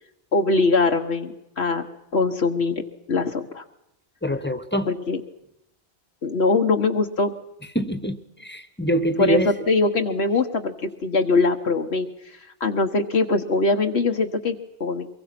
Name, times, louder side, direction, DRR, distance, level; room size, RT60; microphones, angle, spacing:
voice 1, 0.3-1.9 2.1-2.8 3.1-3.6 4.9-5.2 6.2-7.3 9.2-12.1 12.6-15.1, left 3 dB, 75° left, 4 dB, 1.6 m, -22 dB
voice 2, 4.2-4.9 7.7-9.5, equal, 10° left, 10 dB, 1.4 m, -24 dB
24.0 x 23.0 x 6.0 m, 0.89 s
omnidirectional pair, 1.1 m